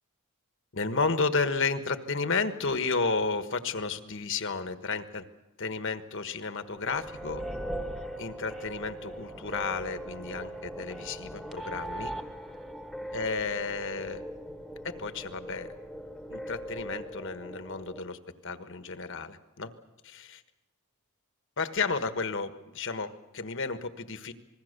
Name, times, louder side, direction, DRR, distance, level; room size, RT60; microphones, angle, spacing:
voice 1, 0.7-5.2 5.6-7.4 8.2-12.1 13.1-14.2 14.8-15.7 16.3-19.7 20.0-20.4 21.6-24.3, left 4 dB, 60° left, 9 dB, 1.4 m, -32 dB
sound 1, 6.7-18.0, equal, ahead, 1.3 m, -40 dB
27.0 x 21.0 x 6.8 m, 1.0 s
head